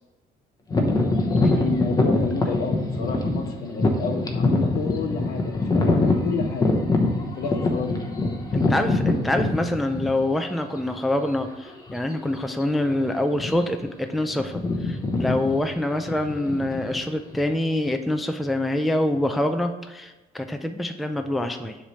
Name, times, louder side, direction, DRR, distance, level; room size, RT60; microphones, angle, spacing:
sound 1, 0.7-10.5 11.1-11.2 11.9-12.1 12.4-12.6 13.3-13.8 14.1-17.5, left 2 dB, 20° left, 0.9 m, -24 dB
voice 1, 1.5-6.8 7.4-8.1, left 4 dB, 65° left, 4 dB, 1.1 m, -29 dB
voice 2, 8.5-21.8, left 1 dB, ahead, 6 dB, 0.4 m, -25 dB
7.0 x 3.2 x 5.4 m, 1.1 s
cardioid pair, 110°, 17 cm